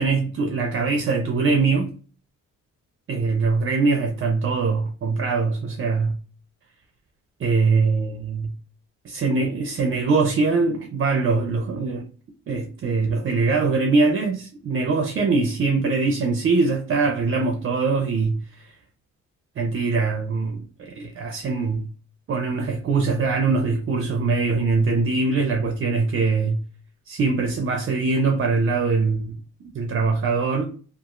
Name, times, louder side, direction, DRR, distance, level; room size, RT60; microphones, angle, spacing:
voice 1, 0.0-1.9 3.1-6.1 7.4-8.5 9.0-12.1 12.5-18.8 19.6-21.9 22.3-26.6 27.1-29.4 29.7-30.6, right 4 dB, 40° right, 0.5 m, -22 dB
2.9 x 2.4 x 2.4 m
cardioid pair, 90°, 30 cm